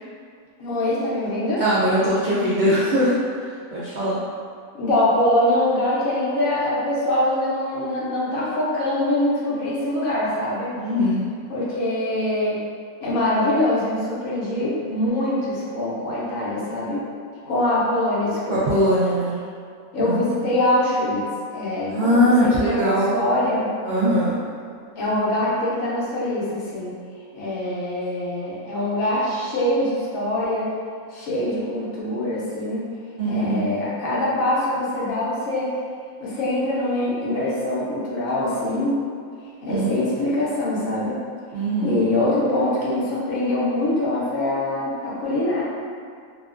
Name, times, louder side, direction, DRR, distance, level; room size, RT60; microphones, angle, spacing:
voice 1, 0.6-1.6 4.8-10.7 11.5-12.6 13.0-17.0 17.4-18.8 19.9-21.2 21.5-23.7 25.0-27.0 27.3-30.7 31.1-32.9 33.3-35.7 36.2-39.0 39.6-41.2 41.8-45.6, left 1 dB, 75° left, -6 dB, 1.1 m, -23 dB
voice 2, 1.6-4.2 10.8-11.3 18.5-19.4 20.0-20.5 21.9-23.1 23.8-24.4 33.2-33.7 39.7-40.0 41.5-42.0, equal, 75° right, -10 dB, 0.4 m, -21 dB
2.8 x 2.4 x 2.4 m, 2.2 s
omnidirectional pair, 1.5 m